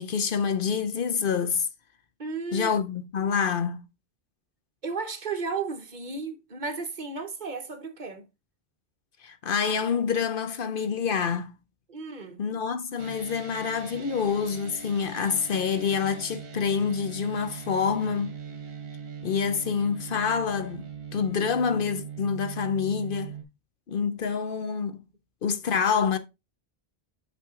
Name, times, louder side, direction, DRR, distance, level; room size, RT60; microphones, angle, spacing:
voice 1, 0.0-1.7 2.5-3.8 9.2-11.5 12.4-18.3 19.2-20.8 21.1-23.3 23.9-25.0 25.4-26.2, left 6 dB, 60° left, 0.8 m, -27 dB
voice 2, 2.2-2.7 4.8-8.2 11.9-12.4, right 4 dB, 50° right, 1.1 m, -34 dB
sound 1, 13.0-23.4, right 7 dB, 70° right, 1.3 m, -40 dB
6.0 x 5.9 x 3.7 m
omnidirectional pair, 1.1 m